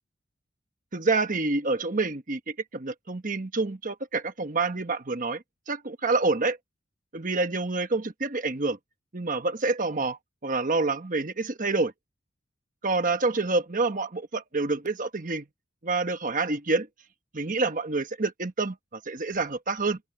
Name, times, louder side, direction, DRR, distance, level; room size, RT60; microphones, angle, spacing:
voice 1, 0.9-6.6 7.1-8.8 9.1-11.9 12.8-15.4 15.8-16.9 17.3-20.0, right 3 dB, 40° right, 1.2 m, -27 dB
open air
head